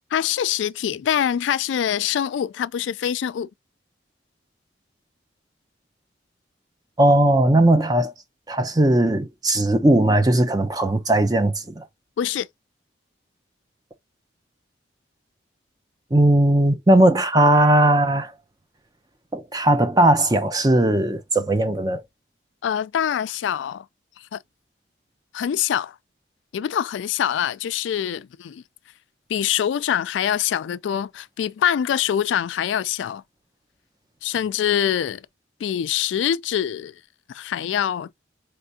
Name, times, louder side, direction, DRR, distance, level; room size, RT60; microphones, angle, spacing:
voice 1, 0.1-3.5 12.2-12.5 22.6-23.9 24.3-24.4 25.3-26.0 26.5-28.6 29.3-33.2 34.2-35.2 35.6-36.9 37.3-38.2, left 9 dB, 75° left, 0.3 m, -24 dB
voice 2, 7.0-8.1 8.5-11.8 16.1-18.3 19.3-22.0, right 1 dB, 20° right, 0.6 m, -18 dB
4.4 x 3.4 x 2.7 m
head